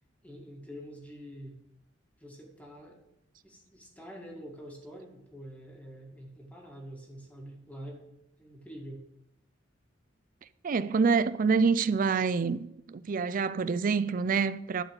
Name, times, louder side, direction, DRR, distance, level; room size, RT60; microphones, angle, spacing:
voice 1, 0.2-1.6 2.2-3.0 3.4-8.0 8.4-9.0, equal, 10° left, 2.0 m, -46 dB
voice 2, 10.6-14.8, right 5 dB, 45° right, 0.4 m, -26 dB
12.0 x 4.9 x 6.6 m
head